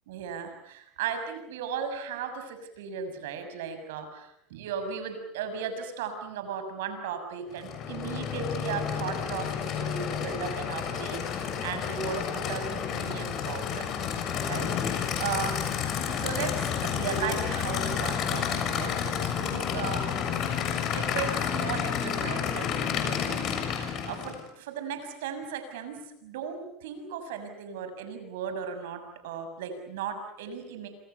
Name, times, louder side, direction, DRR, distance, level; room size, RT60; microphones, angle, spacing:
voice 1, 0.1-13.9 14.5-15.5 16.2-23.4 23.7-30.9, right 6 dB, 80° right, 8 dB, 6.8 m, -36 dB
Aircraft / Idling, 7.5-24.5, left 8 dB, 50° left, 7.0 m, -30 dB
28.0 x 27.5 x 7.0 m, 0.74 s
supercardioid pair, 100°, 0 cm